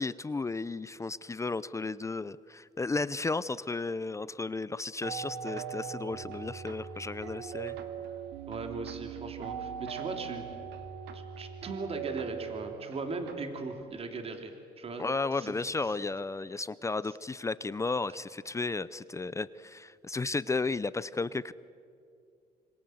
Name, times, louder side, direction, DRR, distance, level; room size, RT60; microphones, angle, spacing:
voice 1, 0.0-7.8 15.0-21.5, left 3 dB, 15° left, 17 dB, 0.6 m, -34 dB
sound 1, 5.0-13.8, right 8 dB, 85° right, 2.4 m, -40 dB
voice 2, 8.5-10.6 11.1-15.1 15.3-15.5 15.8-16.0 17.0-17.2, right 3 dB, 35° right, 5 dB, 3.0 m, -39 dB
26.5 x 25.5 x 7.9 m, 2.4 s
cardioid pair, 110°, 17 cm